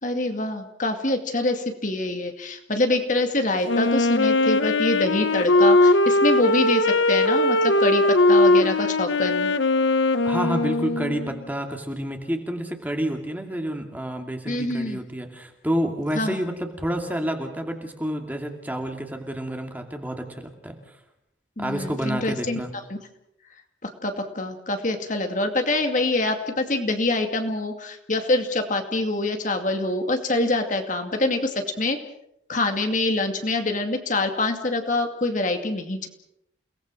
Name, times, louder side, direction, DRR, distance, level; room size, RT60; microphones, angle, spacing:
voice 1, 0.0-9.5 14.5-15.0 16.1-16.4 21.6-22.6 22.9-23.0 23.8-32.0 32.5-36.1, left 2 dB, 40° left, 5 dB, 2.4 m, -25 dB
Wind instrument woodwind instrument, 3.7-11.4, left 2 dB, 70° left, 1.2 m, -20 dB
voice 2, 10.2-21.0 21.6-22.7, equal, 10° right, 4 dB, 2.5 m, -29 dB
29.5 x 19.0 x 6.3 m, 0.78 s
head